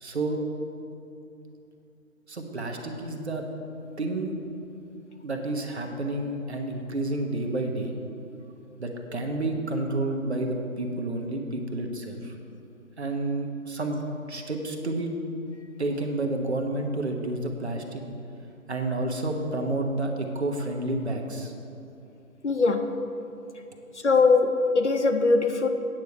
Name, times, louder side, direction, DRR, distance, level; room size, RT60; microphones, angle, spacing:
voice 1, 0.0-0.4 2.3-3.4 4.0-4.3 5.2-7.9 8.8-12.3 13.0-14.0 14.3-15.1 15.8-18.0 18.7-21.5, right 2 dB, 50° right, 3 dB, 1.2 m, -30 dB
voice 2, 22.4-23.0 24.0-25.7, left 3 dB, 55° left, 7 dB, 0.7 m, -21 dB
9.2 x 4.8 x 7.8 m, 2.8 s
figure-of-eight pair, 165°, 42 cm